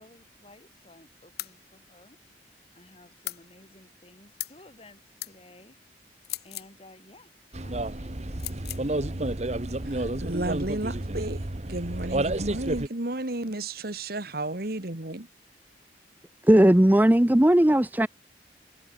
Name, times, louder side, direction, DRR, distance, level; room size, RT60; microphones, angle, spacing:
voice 1, 0.0-2.2 2.7-5.8 6.4-7.3 7.6-9.5 9.8-10.6, left 1 dB, 35° left, 4.7 m, -54 dB
sound 1, 1.4-1.6 3.2-3.4 4.4-4.6 5.2-5.3 6.2-6.7 8.4-8.8, left 15 dB, 60° left, 1.7 m, -37 dB
sound 2, 7.5-12.9, right 1 dB, 40° right, 1.4 m, -30 dB
voice 2, 10.0-11.4 11.7-15.3, right 2 dB, 55° right, 2.0 m, -32 dB
voice 3, 16.5-18.1, right 1 dB, 10° right, 0.6 m, -18 dB
head